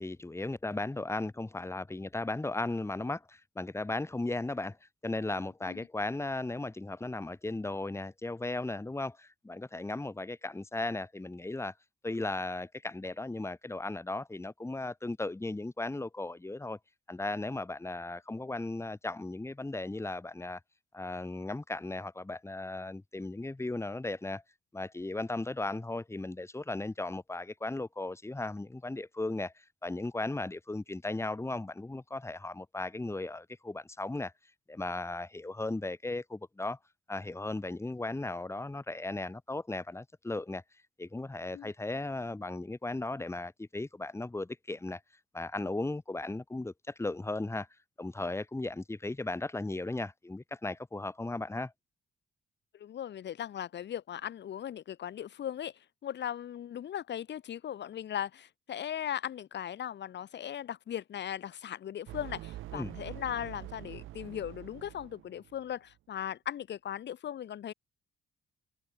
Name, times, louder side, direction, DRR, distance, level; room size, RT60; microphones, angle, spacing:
voice 1, 0.0-4.8 5.0-11.7 12.0-16.8 17.1-20.6 20.9-24.4 24.7-34.3 34.7-36.8 37.1-40.6 41.0-45.0 45.3-47.7 48.0-51.7 62.7-62.9, left 2 dB, 15° left, 2.3 m, -36 dB
voice 2, 52.7-55.7 56.0-67.7, left 10 dB, 60° left, 1.7 m, -38 dB
sound 1, 62.1-65.7, right 15 dB, 90° right, 7.7 m, -45 dB
cardioid pair, 90°, 20 cm